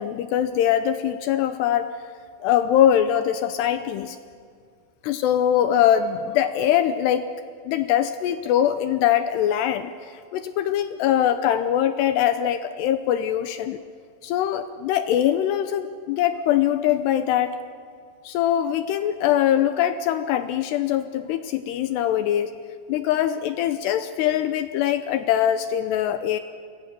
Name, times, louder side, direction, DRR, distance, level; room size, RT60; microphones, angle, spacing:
voice 1, 0.0-2.0 2.4-4.2 5.0-7.3 7.7-13.8 14.2-17.6 18.2-22.5 22.9-26.4, left 10 dB, 80° left, 10 dB, 2.6 m, -22 dB
29.5 x 24.5 x 6.8 m, 2.1 s
omnidirectional pair, 5.4 m